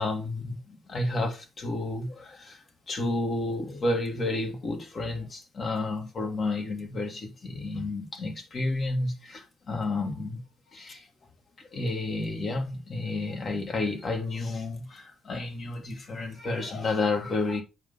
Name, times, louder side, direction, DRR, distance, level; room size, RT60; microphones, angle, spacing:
voice 1, 0.0-10.4 10.7-11.1 11.6-17.6, left 2 dB, 45° left, 2.4 m, -31 dB
7.2 x 5.6 x 3.8 m
cardioid pair, 95°, 0 cm